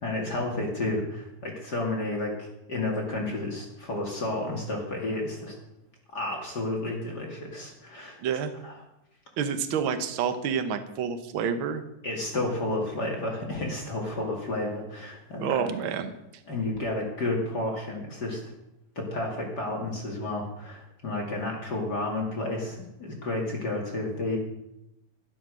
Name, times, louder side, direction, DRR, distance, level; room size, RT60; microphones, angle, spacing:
voice 1, 0.0-5.5 6.1-8.2 8.6-8.8 12.0-15.6 16.5-18.5 19.0-24.4, left 2 dB, 35° left, 0 dB, 2.5 m, -31 dB
voice 2, 8.2-8.5 9.4-11.8 15.4-16.1, right 7 dB, 75° right, 9 dB, 1.1 m, -28 dB
12.0 x 11.5 x 6.3 m, 0.85 s
omnidirectional pair, 3.7 m